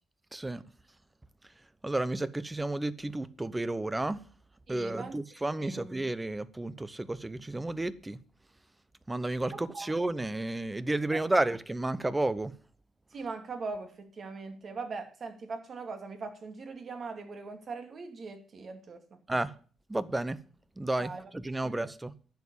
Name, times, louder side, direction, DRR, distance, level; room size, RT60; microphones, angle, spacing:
voice 1, 0.3-0.6 1.8-4.2 4.7-8.2 9.1-12.6 19.3-19.5 19.9-20.4 20.8-22.1, right 2 dB, 15° right, 0.8 m, -32 dB
voice 2, 4.7-5.2 5.6-5.8 9.5-9.9 13.1-19.0 21.0-21.3 21.6-21.8, right 4 dB, 50° right, 2.3 m, -40 dB
10.5 x 7.3 x 7.1 m
cardioid pair, 90°, 0 cm